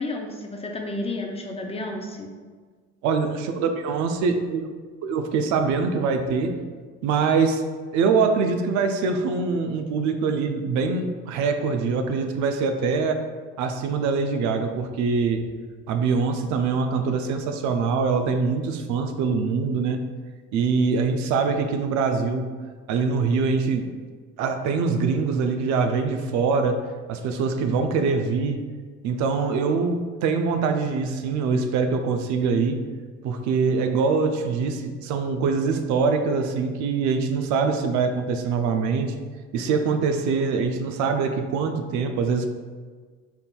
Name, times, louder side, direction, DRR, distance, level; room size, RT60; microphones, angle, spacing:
voice 1, 0.0-2.3, left 2 dB, 20° left, 2 dB, 0.4 m, -31 dB
voice 2, 3.0-4.6 5.0-6.5 7.0-7.6 7.9-13.2 13.6-15.4 15.9-20.0 20.5-22.5 22.9-23.9 24.4-26.8 27.1-28.6 29.0-32.8 33.2-39.1 39.5-42.5, right 5 dB, 70° right, 6 dB, 0.5 m, -23 dB
4.2 x 3.6 x 2.2 m, 1.5 s
cardioid pair, 110°, 30 cm